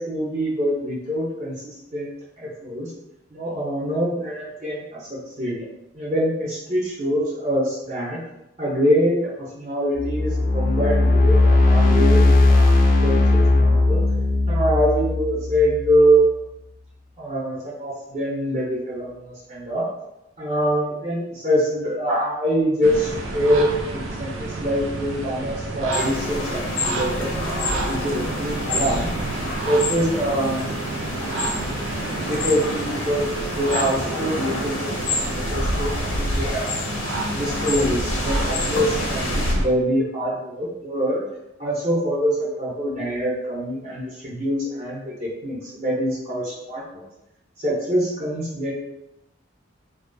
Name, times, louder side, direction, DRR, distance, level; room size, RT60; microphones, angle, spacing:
voice 1, 0.0-2.1 2.4-2.9 3.3-5.6 5.9-8.2 8.6-14.0 14.5-16.4 17.2-19.9 20.4-29.1 29.6-30.7 32.1-36.9 37.3-41.2 41.6-47.0 47.6-48.7, equal, 35° right, -7 dB, 0.5 m, -24 dB
sound 1, 10.0-16.2, left 2 dB, 45° left, 0.3 m, -17 dB
sound 2, 22.8-39.7, right 2 dB, 85° right, 0.4 m, -28 dB
sound 3, 25.9-39.5, left 3 dB, 85° left, 0.6 m, -30 dB
2.4 x 2.2 x 2.5 m, 0.88 s
head